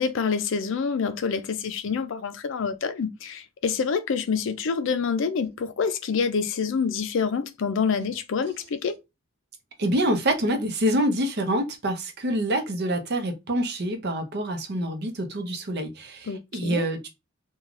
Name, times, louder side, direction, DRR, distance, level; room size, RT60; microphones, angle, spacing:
voice 1, 0.0-8.9 16.3-16.8, left 5 dB, 65° left, 0.4 m, -27 dB
voice 2, 9.8-17.1, right 1 dB, 55° right, 0.6 m, -26 dB
3.1 x 2.3 x 2.4 m
head